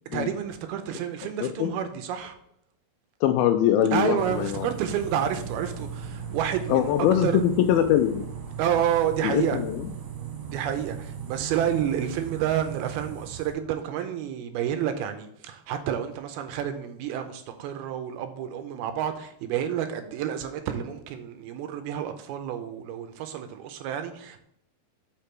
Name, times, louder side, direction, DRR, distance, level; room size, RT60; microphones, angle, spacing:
voice 1, 0.1-2.4 3.9-6.9 7.2-7.4 8.6-9.6 10.5-24.4, right 9 dB, 80° right, 2.4 m, -29 dB
voice 2, 1.4-1.7 3.2-4.7 6.7-8.3 9.2-9.9, left 10 dB, 85° left, 2.2 m, -23 dB
sound 1, 4.2-13.5, right 7 dB, 65° right, 2.6 m, -38 dB
6.9 x 5.8 x 4.4 m
omnidirectional pair, 4.6 m